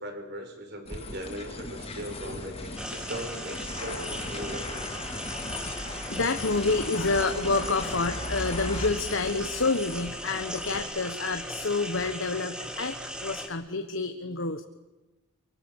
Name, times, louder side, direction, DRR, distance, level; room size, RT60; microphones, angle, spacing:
voice 1, 0.0-4.9, equal, 50° right, 6 dB, 4.7 m, -39 dB
sound 1, 0.9-10.8, left 2 dB, 25° left, 3.7 m, -38 dB
sound 2, 2.8-13.5, equal, 5° right, 2.2 m, -38 dB
voice 2, 5.4-14.6, left 3 dB, 65° left, 7 dB, 1.3 m, -29 dB
24.5 x 24.0 x 7.3 m, 1.1 s
head